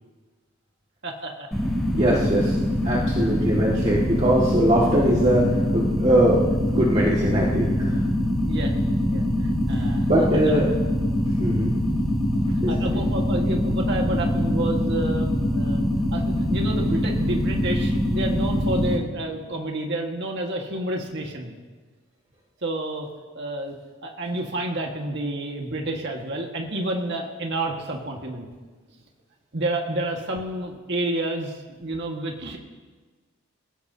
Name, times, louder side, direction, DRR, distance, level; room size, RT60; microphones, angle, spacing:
voice 1, 1.0-1.5 8.5-8.7 9.1-10.1 12.5-15.8 16.1-21.5 22.6-23.1 23.4-23.7 24.0-28.5 29.5-32.6, right 1 dB, 55° right, 1 dB, 1.7 m, -29 dB
sound 1, 1.5-19.0, left 1 dB, ahead, 3.1 m, -23 dB
voice 2, 1.9-2.6 2.8-6.4 6.7-8.0 10.1-10.7 11.4-11.7 12.6-12.9, right 1 dB, 30° right, -5 dB, 1.9 m, -21 dB
29.0 x 16.5 x 2.8 m, 1.4 s
head